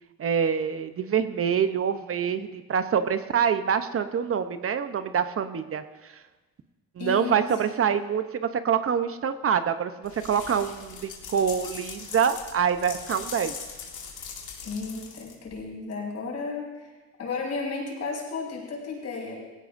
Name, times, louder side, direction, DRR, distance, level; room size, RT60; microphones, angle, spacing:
voice 1, 0.2-6.1 7.0-13.5, right 7 dB, 50° right, 10 dB, 0.8 m, -26 dB
voice 2, 7.0-7.5 14.6-16.9 17.2-19.3, left 4 dB, 60° left, -3 dB, 5.6 m, -33 dB
sound 1, 10.0-15.6, left 6 dB, 80° left, 2.5 m, -40 dB
18.5 x 16.5 x 2.6 m, 1.2 s
cardioid pair, 90°, 30 cm